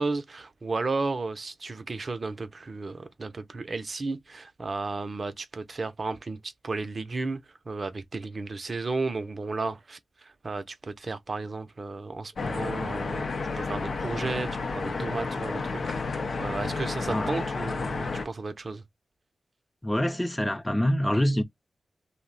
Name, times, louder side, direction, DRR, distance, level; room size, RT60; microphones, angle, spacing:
voice 1, 0.0-13.3 13.6-16.0 16.4-18.8, right 3 dB, 55° right, 0.5 m, -33 dB
sound 1, 12.4-18.3, left 4 dB, 70° left, 0.5 m, -31 dB
voice 2, 17.1-17.4 19.8-21.4, equal, 15° left, 0.5 m, -25 dB
2.5 x 2.0 x 3.8 m
cardioid pair, 45°, 0 cm